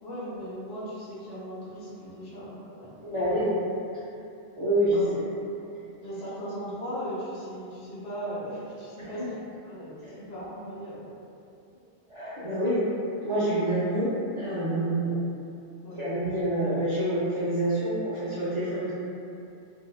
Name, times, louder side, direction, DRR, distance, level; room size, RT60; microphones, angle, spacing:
voice 1, 0.0-2.9 4.9-5.7 6.0-9.4 9.6-11.1 15.8-16.0, equal, 60° left, -9 dB, 0.9 m, -38 dB
voice 2, 3.0-3.5 4.6-5.2 9.0-9.3 10.0-10.1 12.1-12.9 13.2-15.2 15.9-18.9, right 1 dB, 45° right, -12 dB, 0.4 m, -27 dB
2.7 x 2.3 x 2.2 m, 2.7 s
omnidirectional pair, 1.1 m